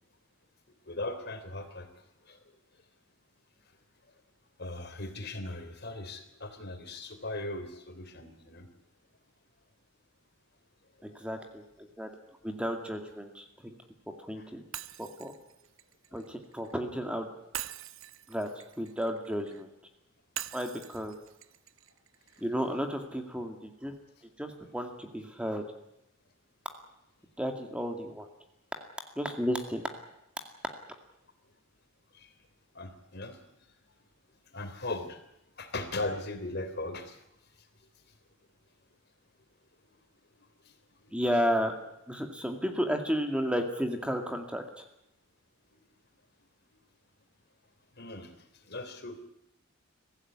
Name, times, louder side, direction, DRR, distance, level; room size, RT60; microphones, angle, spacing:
voice 1, 0.9-1.9 2.3-2.4 4.6-8.7 11.1-11.2 32.1-32.3 32.8-33.4 34.5-35.2 35.6-37.2 40.7-40.8 41.0-41.1 48.0-48.3 48.7-49.2, left 2 dB, 55° left, 8 dB, 3.4 m, -38 dB
voice 2, 11.0-12.1 12.4-13.7 14.3-14.6 15.0-15.3 16.1-17.3 18.3-18.5 18.8-19.7 20.5-21.1 22.4-24.0 24.4-25.6 27.4-28.3 29.2-29.8 41.1-41.7 42.1-44.9, equal, 5° right, 5 dB, 2.2 m, -32 dB
Shatter, 14.7-16.8 17.5-19.6 20.4-22.4, right 11 dB, 75° right, 1.0 m, -44 dB
24.0 x 15.5 x 9.7 m, 0.84 s
head